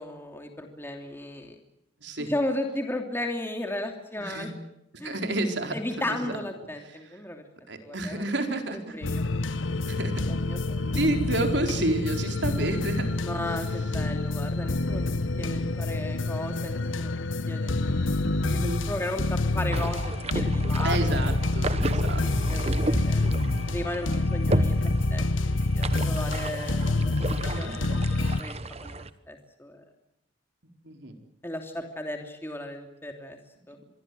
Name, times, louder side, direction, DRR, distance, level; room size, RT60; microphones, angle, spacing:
voice 1, 0.0-1.5 2.2-4.5 5.0-5.2 5.7-7.4 7.8-8.2 8.5-8.6 8.9-9.2 10.3-11.1 13.2-15.1 15.4-17.2 17.5-21.2 22.2-23.2 23.7-24.8 25.1-27.9 28.4-29.8 31.4-33.4 33.7-33.8, left 1 dB, 10° left, 4 dB, 3.0 m, -35 dB
voice 2, 2.0-2.3 4.2-4.5 5.0-6.3 7.0-7.1 7.7-9.0 9.8-10.3 10.9-13.1 15.3-15.6 18.2-18.9 20.8-22.6 23.2-23.7 27.5-27.7 30.8-31.1, right 2 dB, 60° right, 5 dB, 4.4 m, -31 dB
sound 1, 9.0-28.4, left 2 dB, 80° left, 1.1 m, -27 dB
sound 2, 19.7-29.1, right 2 dB, 30° right, 1.2 m, -32 dB
26.5 x 22.0 x 7.8 m, 0.82 s
head